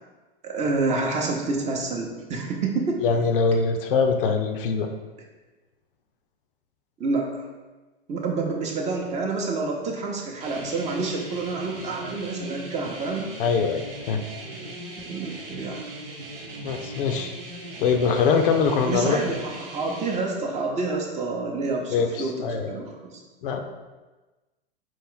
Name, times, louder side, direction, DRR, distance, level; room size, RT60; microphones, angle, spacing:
voice 1, 0.4-3.0 7.0-7.4 8.1-13.3 15.0-15.8 18.9-23.2, right 3 dB, 25° right, 1 dB, 0.7 m, -28 dB
voice 2, 3.0-4.9 13.4-14.2 16.6-17.3 17.8-19.2 21.9-22.8 23.4-23.6, left 5 dB, 60° left, 5 dB, 0.6 m, -23 dB
sound 1, 10.4-20.2, right 1 dB, 70° right, 0.9 m, -38 dB
4.5 x 2.5 x 3.7 m, 1.2 s
hypercardioid pair, 105°, 30 cm